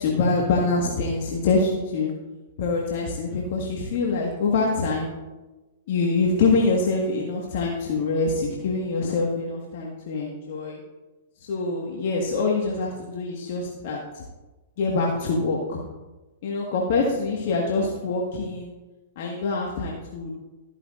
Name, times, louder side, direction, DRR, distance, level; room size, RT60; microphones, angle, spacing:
voice 1, 0.0-2.1 2.6-5.1 5.9-10.8 11.4-14.2 14.8-15.8 16.4-18.7 19.1-20.3, left 3 dB, 60° left, -1 dB, 1.5 m, -25 dB
13.5 x 9.7 x 2.5 m, 1.1 s
hypercardioid pair, 115°, 0 cm